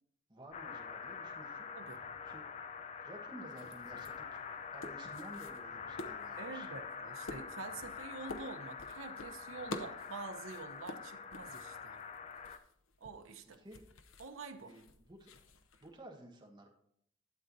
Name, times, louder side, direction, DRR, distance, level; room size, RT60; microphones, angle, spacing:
voice 1, 0.3-2.5 3.0-4.4 4.7-6.7 13.6-13.8 14.6-15.3 15.8-16.7, right 1 dB, 20° right, 0 dB, 1.3 m, -53 dB
sound 1, 0.5-12.6, left 6 dB, 30° left, 0.4 m, -46 dB
sound 2, 3.5-16.0, left 2 dB, 75° left, 0.7 m, -51 dB
voice 2, 6.4-12.0 13.0-13.6 14.2-14.7, right 4 dB, 85° right, 6 dB, 0.9 m, -47 dB
12.0 x 7.7 x 2.7 m, 0.70 s
head